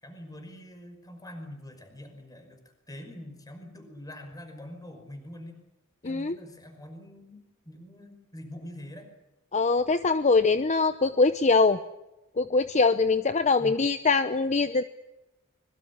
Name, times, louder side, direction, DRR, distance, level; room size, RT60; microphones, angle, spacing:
voice 1, 0.0-2.6 2.9-5.6 6.0-9.1 13.6-13.8, left 1 dB, 15° left, 6 dB, 5.5 m, -44 dB
voice 2, 6.0-6.4 9.5-11.8 12.4-14.8, left 4 dB, 35° left, 11 dB, 0.8 m, -23 dB
25.0 x 22.5 x 7.3 m, 0.93 s
head